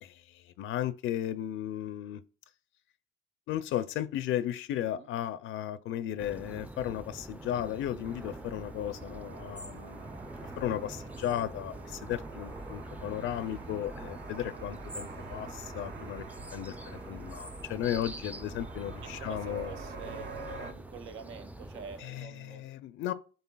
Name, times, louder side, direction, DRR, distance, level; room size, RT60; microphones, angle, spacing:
voice 1, 0.0-2.2 3.5-10.2 10.6-16.2 16.5-19.7 22.0-23.1, left 11 dB, 80° left, 0.5 m, -35 dB
sound 1, 6.2-22.0, right 1 dB, 5° right, 0.4 m, -45 dB
sound 2, 8.0-20.7, right 3 dB, 60° right, 0.9 m, -46 dB
voice 2, 19.0-22.7, right 6 dB, 85° right, 0.8 m, -47 dB
11.0 x 3.9 x 2.3 m
cardioid pair, 90°, 20 cm